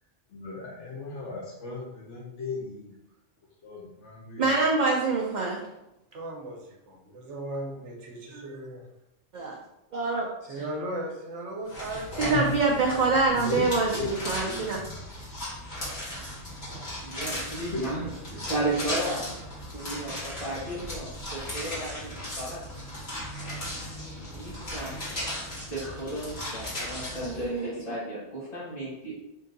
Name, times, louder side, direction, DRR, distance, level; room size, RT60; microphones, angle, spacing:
voice 1, 0.3-2.9 3.6-4.4 13.3-14.9 17.7-17.8 18.4-18.5, left 3 dB, 80° left, -4 dB, 1.1 m, -37 dB
voice 2, 4.4-5.6 9.3-9.5 9.9-10.3 10.6-10.7 12.2-14.8 27.2-27.7, right 3 dB, 55° right, -1 dB, 0.5 m, -25 dB
voice 3, 6.1-8.8 10.5-12.5, right 1 dB, 75° right, 0 dB, 1.1 m, -37 dB
sound 1, 11.7-27.5, left 1 dB, 60° left, 1.8 m, -36 dB
voice 4, 17.0-19.3 19.7-22.6 24.2-24.9 25.7-29.2, right 1 dB, 35° left, -8 dB, 1.0 m, -34 dB
3.7 x 2.6 x 3.8 m, 0.89 s
omnidirectional pair, 1.2 m